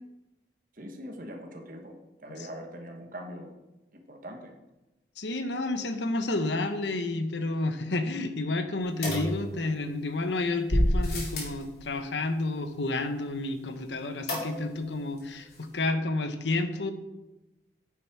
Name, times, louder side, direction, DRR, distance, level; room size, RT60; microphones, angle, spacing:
voice 1, 0.7-1.9 2.2-3.5 3.9-4.5, equal, 50° right, 3 dB, 1.3 m, -42 dB
voice 2, 5.2-16.9, left 2 dB, 85° left, 8 dB, 1.0 m, -30 dB
sound 1, 9.0-10.0 10.7-11.6 14.3-14.9 15.2-15.3 15.5-15.6, equal, 60° left, 3.5 m, -28 dB
9.8 x 7.5 x 4.7 m, 1.0 s
head